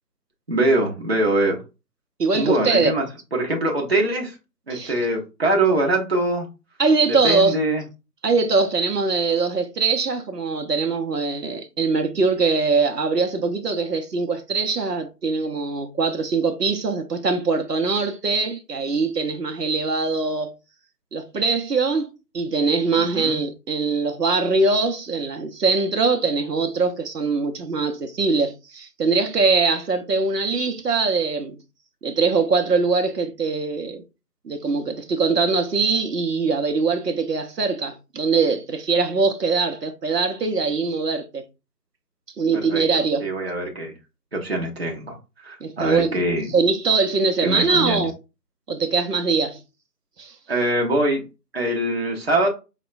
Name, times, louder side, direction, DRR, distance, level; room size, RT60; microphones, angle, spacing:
voice 1, 0.5-1.6 2.3-3.0 3.3-4.4 4.7-6.5 7.1-7.8 23.0-23.4 42.5-42.8 43.2-43.9 44.3-45.2 45.4-46.5 47.4-48.1 50.5-51.2 51.5-52.5, right 1 dB, 40° right, 0.8 m, -23 dB
voice 2, 2.2-2.9 4.7-4.9 6.8-7.5 8.2-20.5 21.1-31.6 32.0-34.0 34.4-41.4 42.4-43.3 45.6-46.2 46.5-48.1 48.7-49.6 50.2-50.3, right 4 dB, 75° right, 0.7 m, -22 dB
4.9 x 2.2 x 2.4 m
figure-of-eight pair, 160°, 49 cm